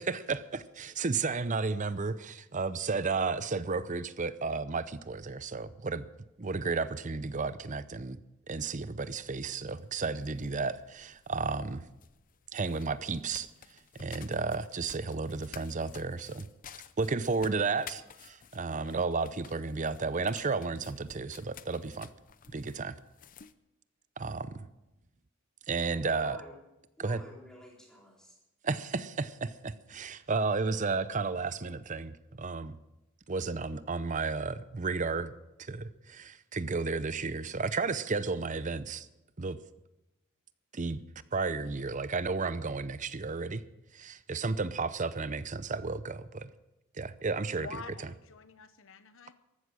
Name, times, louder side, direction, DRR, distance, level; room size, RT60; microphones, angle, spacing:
voice 1, 0.0-6.1 6.4-8.2 8.5-11.9 12.5-13.5 13.9-16.5 17.0-22.1 22.5-23.0 24.2-24.7 25.7-26.4 27.0-27.2 28.6-32.8 33.3-35.3 35.6-39.1 39.4-39.6 40.7-41.0 41.3-43.6 43.9-46.5 46.9-47.7, right 4 dB, 35° right, 15 dB, 0.6 m, -33 dB
sound 1, 9.8-23.5, left 8 dB, 40° left, 0.6 m, -53 dB
voice 2, 25.9-26.6 27.0-28.4, equal, 5° left, -3 dB, 4.2 m, -50 dB
voice 3, 47.6-49.3, left 4 dB, 60° left, 12 dB, 1.1 m, -46 dB
15.0 x 12.5 x 6.3 m, 0.96 s
head